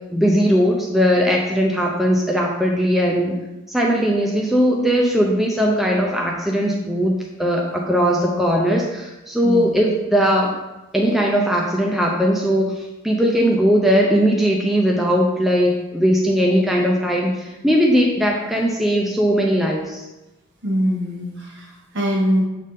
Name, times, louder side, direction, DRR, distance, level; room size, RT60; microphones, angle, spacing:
voice 1, 0.1-3.4 3.7-7.1 7.4-10.6 10.9-20.0, equal, ahead, -1 dB, 0.5 m, -19 dB
voice 2, 9.4-9.7 20.6-22.4, equal, 60° right, -2 dB, 1.4 m, -23 dB
6.3 x 3.6 x 4.1 m, 1.0 s
head